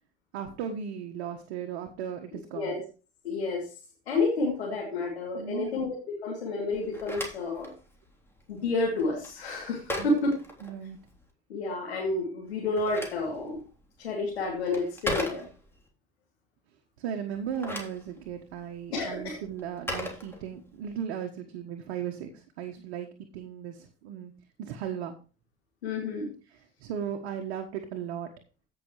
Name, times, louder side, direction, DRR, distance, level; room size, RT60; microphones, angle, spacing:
voice 1, 0.3-2.8 5.3-5.9 10.0-10.1 10.6-11.0 17.0-23.1 23.3-24.3 24.6-25.1 26.5-28.3, right 8 dB, 75° right, 3 dB, 1.4 m, -36 dB
voice 2, 3.2-3.7 4.1-7.7 8.5-10.3 11.5-13.6 14.0-15.5 18.9-19.4 25.8-26.3, left 3 dB, 85° left, -3 dB, 2.9 m, -30 dB
Telephone, 6.7-11.2 12.5-15.9 17.3-20.9, left 1 dB, 5° left, 3.5 m, -39 dB
16.5 x 6.1 x 3.2 m, 0.34 s
hypercardioid pair, 60°, 31 cm